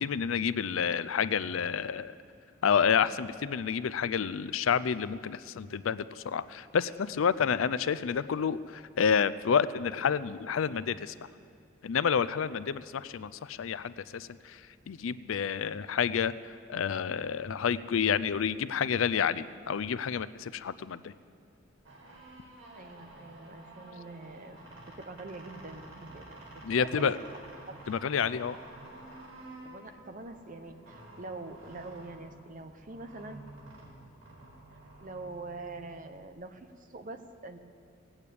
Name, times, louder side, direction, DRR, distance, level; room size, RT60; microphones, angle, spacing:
voice 1, 0.0-2.1 2.6-11.1 11.8-14.6 14.9-21.1 26.6-27.2 27.9-28.6, left 7 dB, 80° left, 16 dB, 0.4 m, -29 dB
sound 1, 21.7-36.3, right 2 dB, 90° right, 4.5 m, -50 dB
voice 2, 22.7-24.6 24.9-27.1 27.7-27.8 29.6-33.4 35.0-37.6, right 2 dB, 40° right, 8 dB, 0.8 m, -44 dB
17.5 x 8.9 x 8.3 m, 2.3 s
head